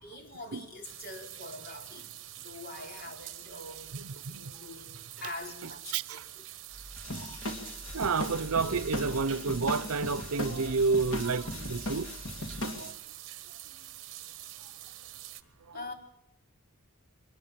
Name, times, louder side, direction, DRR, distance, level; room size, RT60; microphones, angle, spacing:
voice 1, 0.0-2.1 2.4-6.5 15.7-15.9, left 2 dB, 45° left, 4.1 m, -44 dB
sound 1, 0.8-15.4, right 14 dB, 60° right, 1.3 m, -46 dB
voice 2, 3.9-4.5 5.9-6.2 7.2-7.3 7.9-12.1 12.8-12.9 15.7-15.8, right 4 dB, 80° right, 0.7 m, -30 dB
sound 2, 6.7-12.6, right 1 dB, 5° left, 2.6 m, -47 dB
sound 3, 7.0-12.9, left 1 dB, 80° left, 2.8 m, -38 dB
23.0 x 19.0 x 7.5 m
head